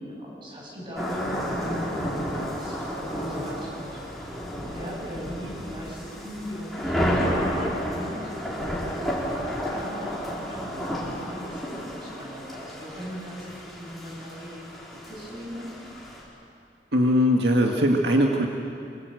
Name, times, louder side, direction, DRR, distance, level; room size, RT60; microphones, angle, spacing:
voice 1, 0.0-4.0 4.6-8.7 9.6-14.6 15.1-15.8, equal, 25° right, -3 dB, 7.5 m, -38 dB
sound 1, 1.0-16.2, equal, ahead, 4.6 m, -31 dB
voice 2, 16.9-18.5, equal, 80° right, 1 dB, 1.8 m, -20 dB
25.0 x 24.5 x 7.8 m, 2.5 s
head